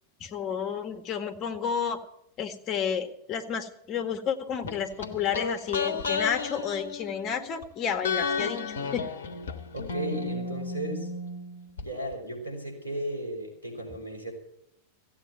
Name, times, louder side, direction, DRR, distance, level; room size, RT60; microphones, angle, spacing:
voice 1, 0.2-2.0 2.4-9.1, left 7 dB, 35° left, 9 dB, 1.9 m, -31 dB
sound 1, 4.7-7.6 8.0-11.8 12.1-12.2, left 4 dB, 65° left, 1.4 m, -33 dB
voice 2, 9.7-11.1 11.8-14.3, equal, 85° right, 2 dB, 4.8 m, -35 dB
15.5 x 8.8 x 9.1 m, 0.76 s
figure-of-eight pair, 90°, 0 cm